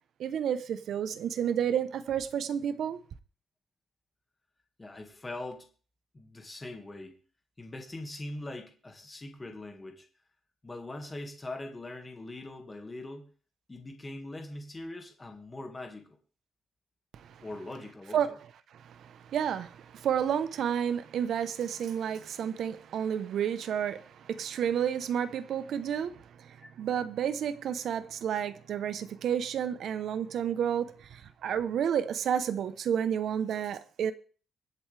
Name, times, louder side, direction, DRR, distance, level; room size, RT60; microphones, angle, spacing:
voice 1, 0.2-3.0 17.1-17.4 18.1-18.3 18.7-34.1, right 8 dB, 60° right, 0.9 m, -31 dB
voice 2, 4.8-5.7 6.1-7.2 7.6-10.1 10.6-13.3 13.7-16.2 17.4-18.2, left 2 dB, 15° left, 2.0 m, -42 dB
24.5 x 8.1 x 3.4 m
cardioid pair, 170°, 0 cm